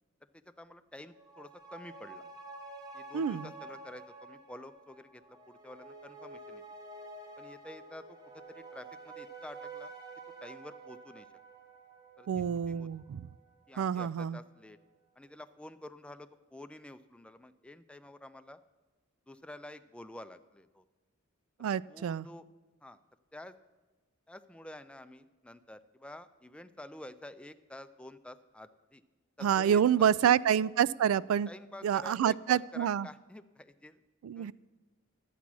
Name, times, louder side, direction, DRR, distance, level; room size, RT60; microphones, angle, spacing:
voice 1, 0.3-2.3 2.9-6.6 7.4-9.9 10.4-11.3 12.2-12.9 13.7-14.8 15.2-18.6 19.3-20.8 21.9-22.4 22.8-23.0 23.3-23.6 24.3-29.0 29.4-30.4 31.5-34.0 34.4-34.5, left 1 dB, 5° left, 10 dB, 0.4 m, -49 dB
sound 1, 1.0-13.9 14.2-14.3, right 3 dB, 20° right, 1.3 m, -49 dB
voice 2, 3.1-3.5 12.3-13.3 13.8-14.4 21.6-22.3 29.4-31.5 31.8-33.1 34.2-34.5, right 9 dB, 80° right, 21 dB, 0.3 m, -27 dB
11.5 x 8.4 x 6.1 m, 1.2 s
head